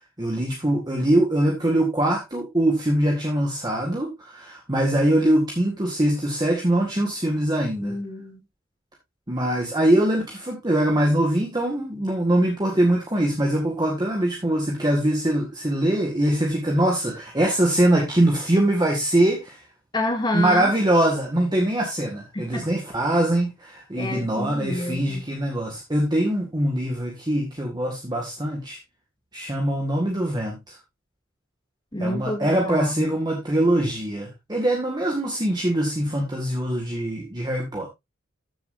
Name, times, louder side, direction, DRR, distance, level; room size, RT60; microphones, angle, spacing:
voice 1, 0.2-8.0 9.3-19.6 20.3-28.8 29.3-30.8 32.0-37.9, right 1 dB, 20° right, 1.9 m, -23 dB
voice 2, 7.8-8.4 19.9-20.7 22.3-22.6 24.0-25.2 31.9-33.1, left 1 dB, 20° left, 2.4 m, -28 dB
14.5 x 7.2 x 2.6 m
head